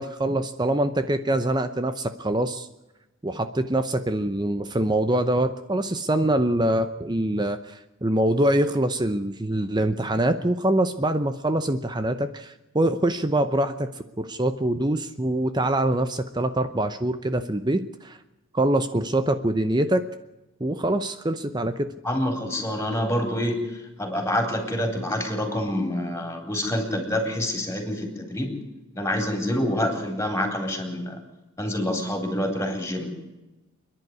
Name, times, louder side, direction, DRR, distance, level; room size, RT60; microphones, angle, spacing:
voice 1, 0.0-2.7 3.2-13.9 14.2-18.2 18.5-20.1 20.6-21.9, right 1 dB, 20° right, 9 dB, 0.8 m, -24 dB
voice 2, 22.0-23.6 24.0-28.5 29.0-31.2 31.6-33.1, left 1 dB, 10° left, 4 dB, 4.2 m, -27 dB
27.0 x 11.0 x 9.7 m, 1.0 s
head